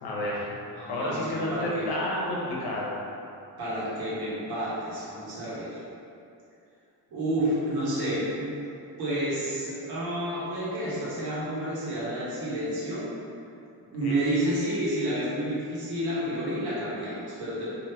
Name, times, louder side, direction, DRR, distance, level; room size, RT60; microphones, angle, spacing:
voice 1, 0.0-0.6 0.9-3.0 14.0-14.2, left 1 dB, 75° left, -4 dB, 0.9 m, -30 dB
voice 2, 0.7-1.9 3.6-5.8 7.1-8.5 9.0-13.1 13.9-17.6, right 1 dB, 75° right, -9 dB, 1.3 m, -30 dB
2.9 x 2.7 x 3.3 m, 2.7 s
cardioid pair, 160°, 39 cm